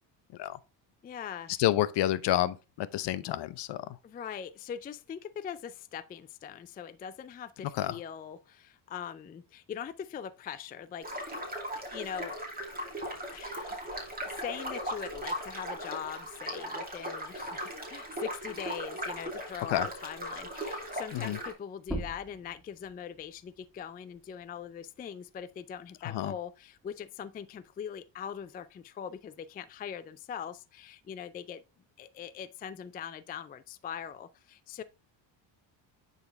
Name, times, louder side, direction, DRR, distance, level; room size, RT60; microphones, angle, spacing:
voice 1, 1.0-1.5 4.0-11.4 11.8-12.4 13.3-31.6 32.0-34.8, left 8 dB, 20° left, 0.3 m, -42 dB
voice 2, 1.6-4.0 7.7-8.0 19.7-19.9 21.1-21.4 26.0-26.3, left 13 dB, 55° left, 0.7 m, -29 dB
sound 1, 11.0-21.5, equal, 20° right, 2.5 m, -38 dB
sound 2, 21.8-27.0 27.4-29.2, right 1 dB, ahead, 2.3 m, -45 dB
9.5 x 4.1 x 3.3 m
supercardioid pair, 85°, 49 cm